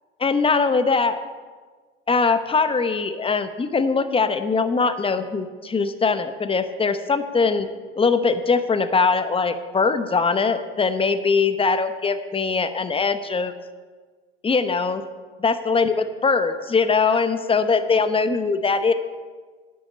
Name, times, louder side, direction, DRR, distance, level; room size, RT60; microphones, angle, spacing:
voice 1, 0.2-1.2 2.1-7.7 8.0-13.5 14.4-15.0 15.4-18.9, left 4 dB, 20° left, 11 dB, 0.9 m, -21 dB
10.0 x 6.4 x 8.4 m, 1.4 s
hypercardioid pair, 75°, 31 cm